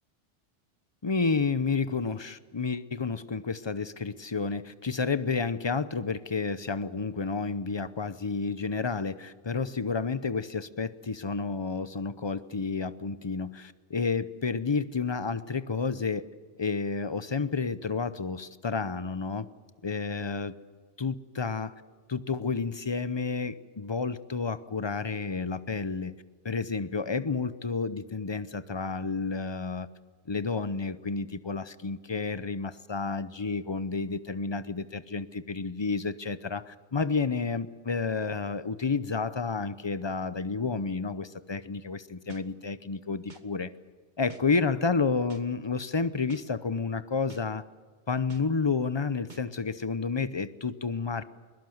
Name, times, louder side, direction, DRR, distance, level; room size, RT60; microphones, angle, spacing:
voice 1, 1.0-16.3 16.6-19.5 19.8-20.5 21.0-21.7 22.1-26.1 26.4-29.9 30.3-43.7 44.2-47.6 48.1-51.2, left 4 dB, 30° left, 14 dB, 0.6 m, -30 dB
sound 1, 42.3-42.4 43.3-43.4 44.3-44.4 45.3-45.4 46.3-46.4 47.3-47.4 48.3-48.4 49.3-49.4, right 3 dB, 40° right, 1.3 m, -48 dB
22.0 x 21.5 x 7.9 m, 1.4 s
omnidirectional pair, 1.2 m